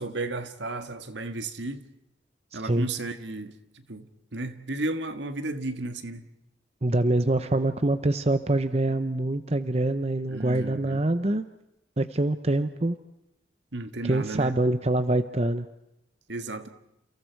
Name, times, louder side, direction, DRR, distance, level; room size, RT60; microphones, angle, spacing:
voice 1, 0.0-1.8 2.5-6.3 10.3-11.1 13.7-14.5 16.3-16.7, right 2 dB, 75° right, 1.7 m, -34 dB
voice 2, 2.5-2.9 6.8-11.4 12.0-13.0 14.0-15.7, right 2 dB, 35° right, 0.8 m, -25 dB
30.0 x 29.0 x 4.7 m
head